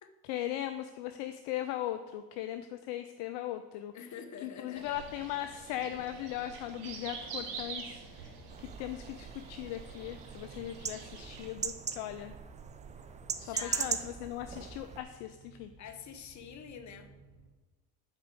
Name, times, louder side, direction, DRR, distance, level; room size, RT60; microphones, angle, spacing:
voice 1, 0.3-3.9 4.4-8.3 8.6-12.3 13.4-15.7, left 12 dB, 60° left, 9 dB, 0.6 m, -38 dB
voice 2, 3.9-5.0 13.4-14.0 15.8-17.1, left 7 dB, 35° left, 7 dB, 1.0 m, -46 dB
sound 1, 4.8-17.5, right 2 dB, 10° left, 1.7 m, -58 dB
sound 2, 4.8-11.5, right 5 dB, 65° right, 1.5 m, -46 dB
sound 3, 8.5-15.0, right 6 dB, 15° right, 0.4 m, -40 dB
8.1 x 4.3 x 5.2 m, 1.3 s
hypercardioid pair, 70°, 47 cm